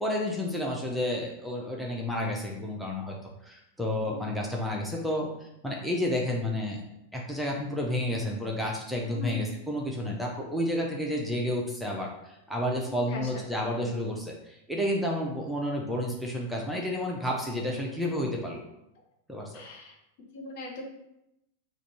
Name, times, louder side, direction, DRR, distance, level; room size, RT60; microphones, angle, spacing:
voice 1, 0.0-3.1 3.4-5.3 5.6-6.8 7.1-18.6 19.3-19.5, left 1 dB, ahead, -2 dB, 0.7 m, -31 dB
voice 2, 9.1-9.4 12.9-13.4 19.5-19.9 20.3-20.8, left 3 dB, 50° left, 0 dB, 1.0 m, -39 dB
3.9 x 2.6 x 4.7 m, 0.86 s
figure-of-eight pair, 90°, 0 cm